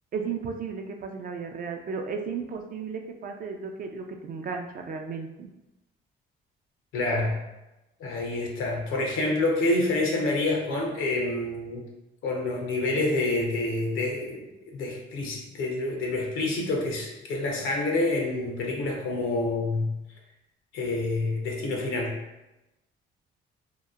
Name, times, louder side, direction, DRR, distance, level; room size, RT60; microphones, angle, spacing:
voice 1, 0.1-5.5, right 5 dB, 45° right, 4 dB, 0.4 m, -34 dB
voice 2, 6.9-7.3 8.0-11.8 12.2-19.9 20.7-22.2, left 2 dB, 85° left, 0 dB, 0.7 m, -27 dB
2.8 x 2.1 x 2.3 m, 0.97 s
cardioid pair, 90°, 20 cm